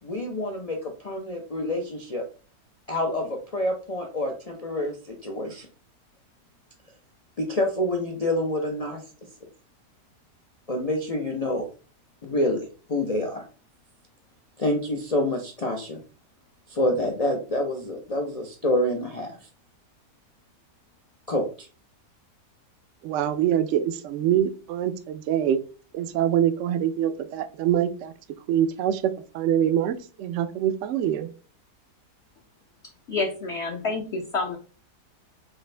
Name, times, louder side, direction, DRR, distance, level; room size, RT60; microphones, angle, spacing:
voice 1, 0.0-2.2 2.9-5.7 7.4-9.0 10.7-11.7 12.2-13.4 14.6-16.0 16.7-19.4 21.3-21.7, left 1 dB, 75° left, 0.3 m, -27 dB
voice 2, 23.0-25.6 25.9-28.1 28.5-31.3, right 10 dB, 70° right, 0.7 m, -24 dB
voice 3, 33.1-34.6, left 3 dB, 55° left, 0.8 m, -28 dB
6.0 x 2.6 x 3.2 m
omnidirectional pair, 1.7 m